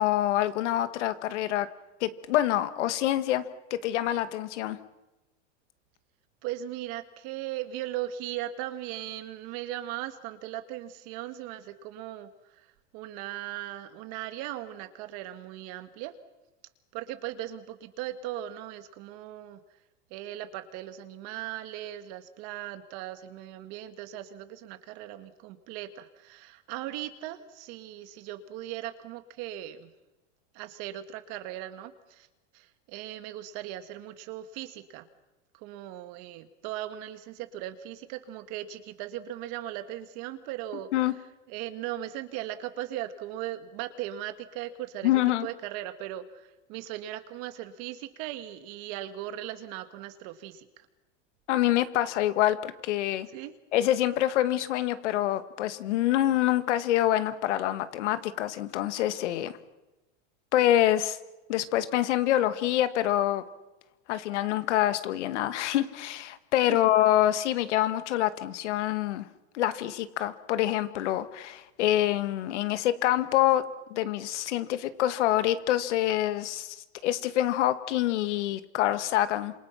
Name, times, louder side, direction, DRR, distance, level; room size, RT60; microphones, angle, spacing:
voice 1, 0.0-1.7 2.0-3.4 3.7-4.8 40.9-41.1 45.0-45.5 51.5-53.3 53.7-59.5 60.5-61.2 61.5-63.4 64.1-69.3 69.5-73.6 73.9-76.8 77.0-79.5, left 13 dB, 75° left, 11 dB, 2.1 m, -26 dB
voice 2, 6.4-12.3 12.9-16.1 16.9-19.6 20.1-29.9 30.5-32.3 32.5-35.1 35.5-40.9 41.5-45.1 45.4-50.9 53.3-53.5 66.7-66.8, right 13 dB, 40° right, 10 dB, 1.9 m, -38 dB
28.5 x 27.5 x 5.9 m, 1.0 s
supercardioid pair, 170°, 35 cm